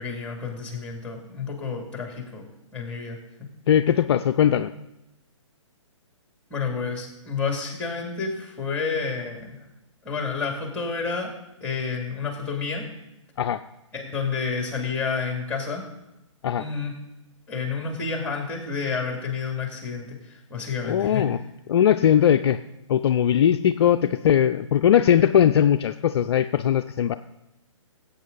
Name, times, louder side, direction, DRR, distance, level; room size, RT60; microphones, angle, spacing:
voice 1, 0.0-2.4 2.7-3.2 6.5-9.6 10.0-11.3 11.6-12.8 13.9-15.8 16.6-16.9 17.5-21.3, left 5 dB, 5° left, 2 dB, 2.6 m, -30 dB
voice 2, 3.7-4.7 13.4-13.6 16.4-16.6 20.8-21.4 21.7-22.6 22.9-27.2, left 9 dB, 50° left, 9 dB, 0.4 m, -20 dB
16.5 x 8.5 x 4.0 m, 0.90 s
figure-of-eight pair, 130°, 17 cm